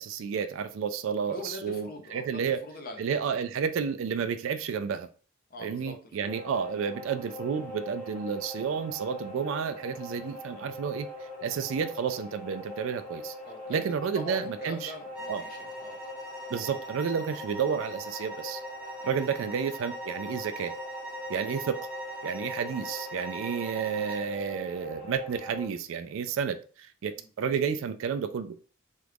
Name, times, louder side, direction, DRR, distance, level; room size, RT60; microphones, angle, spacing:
voice 1, 0.0-2.6 3.0-5.1 5.6-13.3 13.7-14.9 15.3-15.4 16.5-18.6 19.0-20.7 21.3-21.8 22.2-28.6, right 6 dB, 70° right, 0.3 m, -31 dB
voice 2, 1.3-3.0 5.5-6.0 6.2-6.3 13.4-13.8 14.1-16.0 19.4-19.6 27.2-27.3, left 2 dB, 45° left, 0.7 m, -42 dB
sound 1, 6.3-25.6, left 1 dB, 30° left, 1.6 m, -42 dB
sound 2, 15.1-24.3, right 1 dB, 5° right, 0.6 m, -42 dB
3.0 x 2.4 x 3.4 m
head